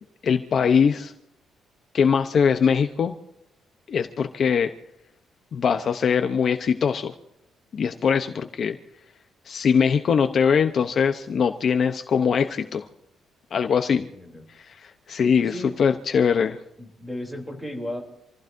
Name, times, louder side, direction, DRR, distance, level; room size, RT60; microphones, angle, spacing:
voice 1, 0.2-1.1 1.9-3.1 3.9-4.7 5.5-7.1 7.8-8.8 9.5-12.9 13.5-14.1 14.6-16.6, left 6 dB, 40° left, 7 dB, 0.8 m, -22 dB
voice 2, 13.9-14.4 15.4-15.8 16.8-18.0, left 1 dB, 5° right, 1 dB, 3.2 m, -35 dB
27.5 x 15.5 x 2.7 m, 0.80 s
cardioid pair, 180°, 0 cm